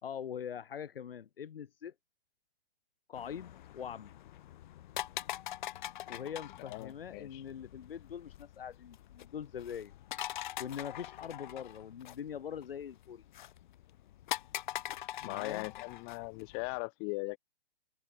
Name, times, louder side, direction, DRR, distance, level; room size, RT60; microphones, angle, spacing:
voice 1, 0.0-1.9 3.1-4.1 6.1-9.9 10.6-13.3 15.2-15.7, left 8 dB, 65° left, 2.9 m, -43 dB
sound 1, 3.1-16.8, left 13 dB, 50° left, 0.7 m, -44 dB
voice 2, 6.6-7.4 15.2-17.4, left 40 dB or more, 30° left, 2.2 m, -39 dB
hypercardioid pair, 130°, 31 cm